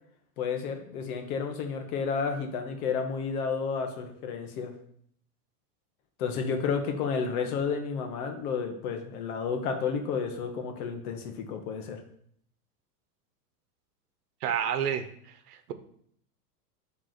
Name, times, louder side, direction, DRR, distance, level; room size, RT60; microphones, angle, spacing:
voice 1, 0.4-4.7 6.2-12.0, left 5 dB, 70° left, 5 dB, 1.5 m, -31 dB
voice 2, 14.4-15.1 15.5-15.7, right 8 dB, 85° right, 10 dB, 1.0 m, -29 dB
7.6 x 3.8 x 5.9 m, 0.66 s
supercardioid pair, 140°, 46 cm